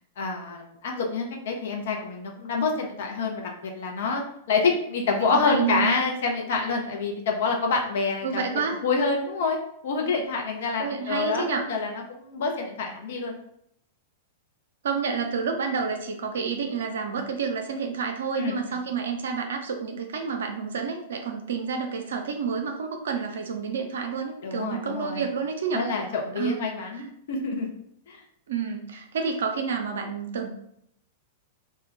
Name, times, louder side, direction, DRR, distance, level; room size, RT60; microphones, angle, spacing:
voice 1, 0.2-4.2 4.5-8.4 8.8-9.6 9.8-13.4 18.4-18.5 24.4-25.3 25.7-27.7 28.1-28.2, left 4 dB, 60° left, 1 dB, 0.5 m, -27 dB
voice 2, 5.3-6.0 8.2-8.8 10.8-11.7 14.8-25.8 26.4-26.6 26.9-27.0 28.5-30.5, right 5 dB, 65° right, 4 dB, 0.5 m, -29 dB
2.2 x 2.1 x 3.8 m, 0.72 s
figure-of-eight pair, 100°, 0 cm